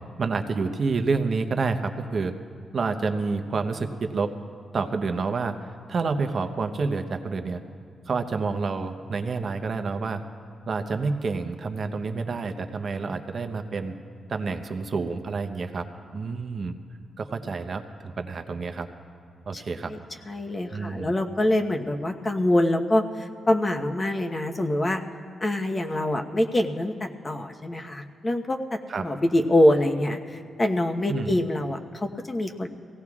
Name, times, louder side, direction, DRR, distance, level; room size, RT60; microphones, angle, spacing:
voice 1, 0.2-2.3 2.7-4.3 4.7-5.5 5.9-7.6 8.1-10.2 10.7-13.9 14.3-15.8 16.1-16.8 17.2-18.9 19.5-19.9 20.7-21.1 28.9-29.1 31.1-31.3, right 4 dB, 55° right, 6 dB, 0.9 m, -28 dB
voice 2, 19.5-20.0 20.3-25.0 25.4-32.7, left 1 dB, 30° left, 3 dB, 1.1 m, -25 dB
22.5 x 17.0 x 2.4 m, 2.2 s
cardioid pair, 65°, 0 cm